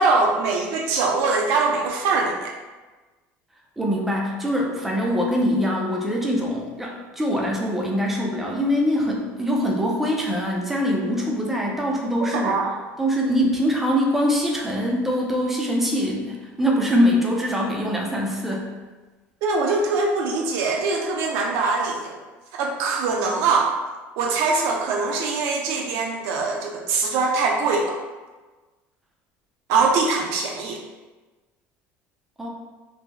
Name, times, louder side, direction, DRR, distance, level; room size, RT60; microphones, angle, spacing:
voice 1, 0.0-2.5 12.2-12.8 19.4-22.2 22.5-23.7 24.2-28.0 29.7-30.8, right 4 dB, 65° right, 1 dB, 0.5 m, -22 dB
voice 2, 3.8-12.6 13.0-18.7 32.4-32.5, equal, 5° right, -2 dB, 0.4 m, -23 dB
2.9 x 2.0 x 3.6 m, 1.3 s
cardioid pair, 175°, 5 cm